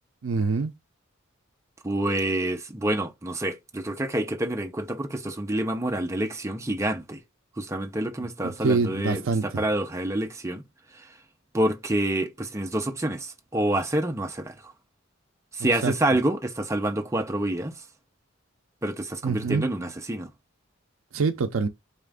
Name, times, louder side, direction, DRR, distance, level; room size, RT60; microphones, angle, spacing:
voice 1, 0.2-0.7 8.4-9.6 15.8-15.9 19.2-19.7 21.1-21.7, right 4 dB, 80° right, 0.5 m, -25 dB
voice 2, 1.8-7.2 7.6-10.6 10.9-11.1 11.5-14.7 15.5-17.8 18.8-20.3, right 1 dB, 15° right, 0.6 m, -27 dB
4.3 x 2.5 x 3.4 m
head